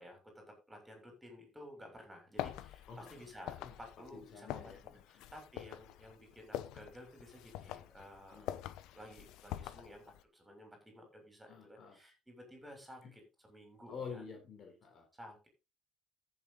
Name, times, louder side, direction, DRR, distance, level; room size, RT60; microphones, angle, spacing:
voice 1, 0.0-4.7 5.1-8.5 8.9-13.2 13.5-14.2 15.1-15.5, equal, 5° right, 3 dB, 7.1 m, -54 dB
sound 1, 2.4-10.2, left 13 dB, 85° left, 0.9 m, -45 dB
voice 2, 4.1-5.3 8.3-8.6 11.5-12.0 13.0-13.1 13.9-15.1, left 5 dB, 50° left, 3 dB, 4.0 m, -49 dB
14.5 x 7.7 x 4.1 m, 0.27 s
cardioid pair, 130°, 0 cm